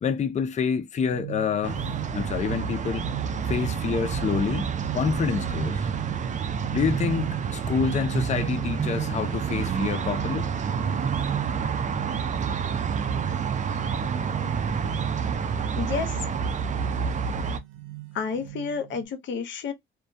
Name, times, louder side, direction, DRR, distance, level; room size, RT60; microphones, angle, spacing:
voice 1, 0.0-1.8 2.1-3.1 3.5-5.9 6.7-10.5, left 6 dB, 35° left, 0.5 m, -27 dB
sound 1, 1.0-19.0, right 17 dB, 85° right, 0.6 m, -39 dB
sound 2, 1.6-17.6, right 6 dB, 40° right, 0.5 m, -28 dB
voice 2, 15.7-16.2 18.1-19.7, left 6 dB, 70° left, 0.7 m, -30 dB
2.2 x 2.2 x 2.6 m
cardioid pair, 90°, 20 cm